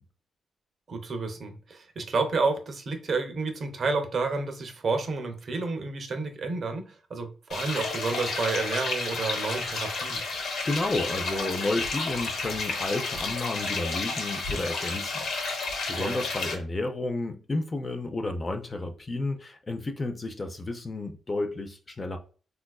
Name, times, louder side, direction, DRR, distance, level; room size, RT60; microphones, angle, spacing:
voice 1, 0.9-10.2 15.9-16.2, right 3 dB, 45° right, 0.5 m, -30 dB
sound 1, 7.5-16.6, left 3 dB, 70° left, 0.7 m, -31 dB
voice 2, 10.3-15.6 15.9-22.2, left 2 dB, 25° left, 0.3 m, -32 dB
3.8 x 2.4 x 2.2 m
wide cardioid pair, 145°, 0 cm